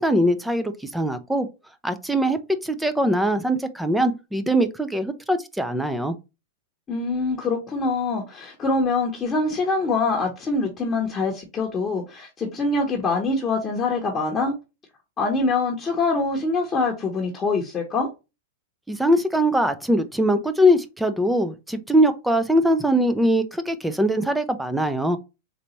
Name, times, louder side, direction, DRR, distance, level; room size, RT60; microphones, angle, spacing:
voice 1, 0.0-1.5 1.8-6.1 18.9-25.2, equal, 5° right, 0.5 m, -22 dB
voice 2, 6.9-14.5 15.2-18.1, left 3 dB, 20° left, 0.9 m, -24 dB
4.0 x 3.3 x 3.1 m
hypercardioid pair, 135°, 0 cm